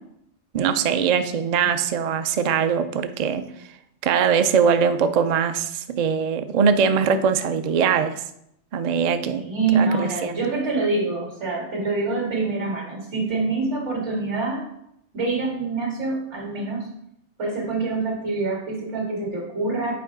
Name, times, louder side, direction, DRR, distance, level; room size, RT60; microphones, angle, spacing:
voice 1, 0.5-3.4 4.0-8.2 8.7-9.4 9.7-10.4, right 6 dB, 65° right, 9 dB, 0.4 m, -21 dB
voice 2, 9.4-14.6 15.1-16.9 17.4-19.9, right 3 dB, 80° right, -2 dB, 2.4 m, -25 dB
7.9 x 4.6 x 3.7 m, 0.76 s
omnidirectional pair, 1.2 m